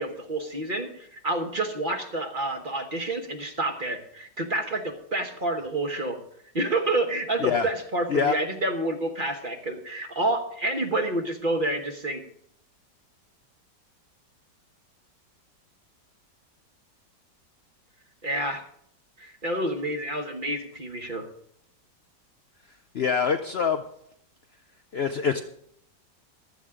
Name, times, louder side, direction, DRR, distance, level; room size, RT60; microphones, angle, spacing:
voice 1, 0.0-6.2 6.5-12.2 18.2-18.6 19.2-21.3, right 2 dB, 35° right, 5 dB, 1.1 m, -29 dB
voice 2, 22.9-23.8 24.9-25.4, left 6 dB, 80° left, 7 dB, 0.5 m, -24 dB
15.5 x 12.0 x 3.7 m, 0.71 s
omnidirectional pair, 1.9 m